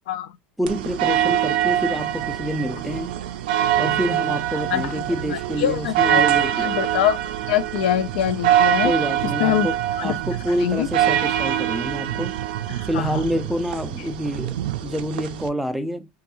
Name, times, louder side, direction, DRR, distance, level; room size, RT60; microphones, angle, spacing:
voice 1, 0.6-3.1 3.8-6.8 8.8-12.4 12.8-16.1, equal, ahead, 0.3 m, -27 dB
sound 1, 0.7-15.5, right 11 dB, 85° right, 0.4 m, -24 dB
voice 2, 5.6-6.2 6.6-7.2 7.5-8.9 9.2-9.7 10.0-10.2 10.6-10.9 12.7-13.1, left 11 dB, 85° left, 0.4 m, -23 dB
2.6 x 2.3 x 2.9 m
supercardioid pair, 125°, 5 cm